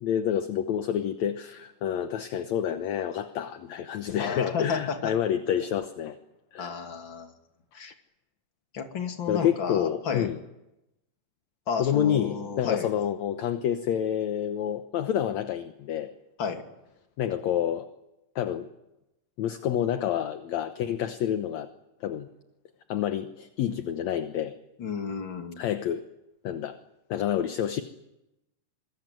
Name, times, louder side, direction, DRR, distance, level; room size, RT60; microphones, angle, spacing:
voice 1, 0.0-6.2 6.5-6.8 9.3-10.4 11.8-16.1 17.2-17.9 18.4-18.7 19.4-21.7 22.0-22.3 22.9-24.6 25.6-26.0 26.4-26.8 27.1-27.8, left 9 dB, 65° left, 9 dB, 2.1 m, -28 dB
voice 2, 4.2-5.1 6.6-7.3 7.7-7.9 8.7-10.3 11.7-12.9 16.4-16.6 24.8-25.7, left 5 dB, 40° left, 5 dB, 2.9 m, -32 dB
26.5 x 22.5 x 9.2 m, 0.93 s
omnidirectional pair, 3.8 m